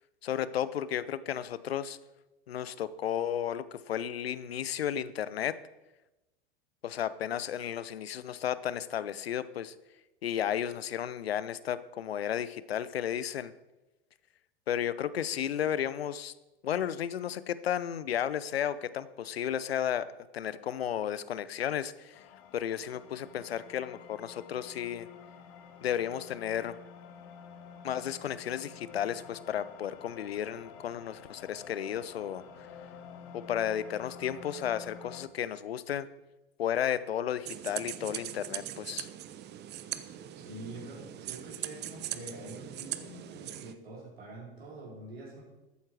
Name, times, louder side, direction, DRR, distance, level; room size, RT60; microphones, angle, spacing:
voice 1, 0.2-2.0 2.5-5.6 6.8-9.7 10.2-13.5 14.7-16.3 16.6-20.1 20.3-22.2 22.5-25.1 25.8-26.8 27.8-32.4 33.3-36.1 36.6-39.1, left 10 dB, 80° left, 16 dB, 0.6 m, -33 dB
sound 1, 22.1-35.3, left 7 dB, 50° left, 1.5 m, -50 dB
sound 2, 37.4-43.7, right 12 dB, 35° right, 0.8 m, -40 dB
voice 2, 40.3-45.4, right 2 dB, 80° right, -4 dB, 4.8 m, -45 dB
13.5 x 9.1 x 4.7 m, 1.0 s
figure-of-eight pair, 80°, 30 cm